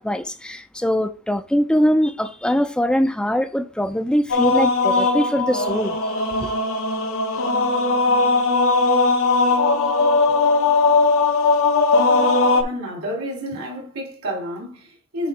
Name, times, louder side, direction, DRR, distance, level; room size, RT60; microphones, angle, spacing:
voice 1, 0.0-6.0 6.4-6.5, equal, 5° left, 0.4 m, -22 dB
sound 1, 4.3-12.6, left 3 dB, 65° left, 0.9 m, -19 dB
voice 2, 12.6-15.3, equal, 80° right, 2.9 m, -30 dB
7.7 x 2.8 x 4.8 m
head